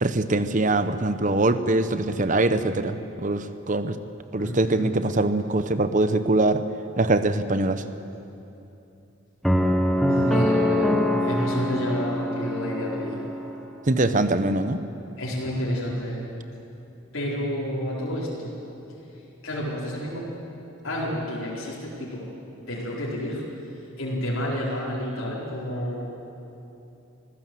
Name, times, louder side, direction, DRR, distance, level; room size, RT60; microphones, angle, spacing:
voice 1, 0.0-4.0 4.3-6.6 7.0-7.8 13.9-14.8, right 2 dB, 40° right, 11 dB, 0.9 m, -23 dB
voice 2, 4.4-4.9 10.1-13.2 15.2-16.2 17.1-18.6 19.4-20.3 20.8-22.3 22.6-23.4 24.0-26.2, equal, 75° left, -6 dB, 4.5 m, -29 dB
sound 1, 9.4-13.6, equal, ahead, 1.1 m, -24 dB
25.0 x 16.0 x 7.8 m, 2.8 s
head